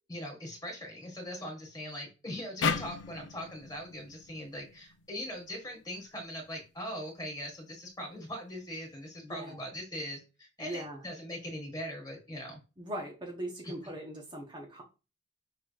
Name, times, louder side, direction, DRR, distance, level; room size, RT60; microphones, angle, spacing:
voice 1, 0.1-12.6 13.6-13.7, equal, 20° left, 1 dB, 1.5 m, -41 dB
sound 1, 2.6-5.8, left 5 dB, 85° left, 0.6 m, -36 dB
voice 2, 9.2-9.6 10.6-11.0 12.8-14.8, right 1 dB, 25° right, 0 dB, 0.9 m, -40 dB
6.0 x 3.4 x 2.4 m, 0.30 s
head